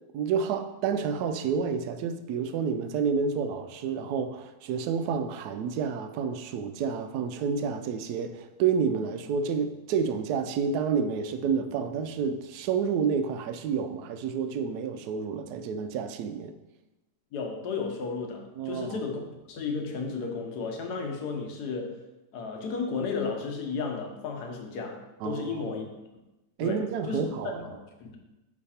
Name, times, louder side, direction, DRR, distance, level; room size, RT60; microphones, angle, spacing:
voice 1, 0.1-16.5 18.6-19.0 25.2-25.7 26.6-27.7, right 6 dB, 75° right, 9 dB, 1.0 m, -29 dB
voice 2, 17.3-19.2 19.5-22.0 22.3-25.8 26.6-28.2, left 4 dB, 65° left, 3 dB, 1.4 m, -33 dB
5.2 x 4.8 x 4.2 m, 1.0 s
omnidirectional pair, 1.9 m